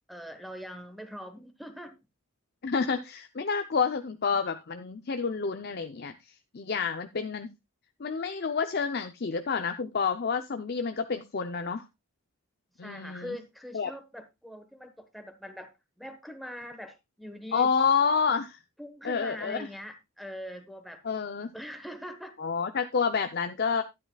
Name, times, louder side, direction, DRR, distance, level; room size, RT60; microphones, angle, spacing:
voice 1, 0.1-2.0 12.8-15.7 16.0-17.7 18.8-21.0 21.5-22.3, equal, ahead, 1.1 m, -42 dB
voice 2, 2.6-7.5 8.0-11.8 12.8-13.4 13.7-13.9 17.5-18.6 19.0-19.7 21.0-21.5 22.4-23.8, left 5 dB, 45° left, 0.6 m, -29 dB
12.0 x 9.7 x 2.3 m
head